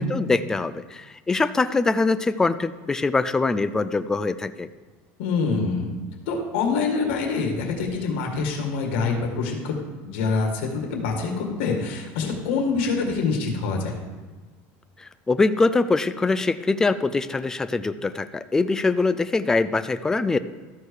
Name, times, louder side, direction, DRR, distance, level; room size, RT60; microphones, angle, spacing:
voice 1, 0.0-4.7 15.0-20.4, left 3 dB, 10° left, 12 dB, 0.3 m, -23 dB
voice 2, 5.2-5.9 6.3-9.8 10.0-13.9, left 4 dB, 85° left, 2 dB, 2.0 m, -25 dB
13.5 x 4.7 x 4.9 m, 1.3 s
cardioid pair, 155°, 6 cm